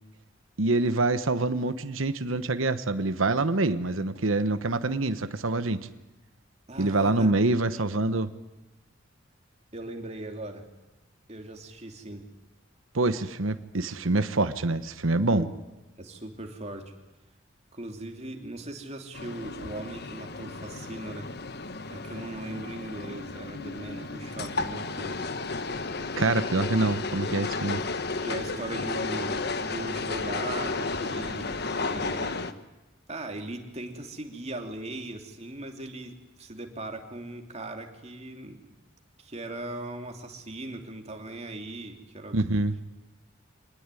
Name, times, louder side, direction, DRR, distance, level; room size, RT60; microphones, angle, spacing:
voice 1, 0.6-5.9 6.8-8.3 12.9-15.5 26.2-27.8 42.3-42.7, right 2 dB, 85° right, 10 dB, 1.1 m, -26 dB
voice 2, 6.7-7.3 9.7-10.6 11.3-12.2 15.3-15.5 16.0-16.9 17.7-21.3 21.9-25.2 28.2-31.5 31.8-32.5 33.1-36.1 36.4-38.6 39.2-42.4, right 2 dB, 35° right, 3 dB, 3.0 m, -39 dB
sound 1, 19.1-32.5, left 3 dB, 55° left, 1.2 m, -33 dB
25.0 x 19.0 x 9.9 m, 1.0 s
head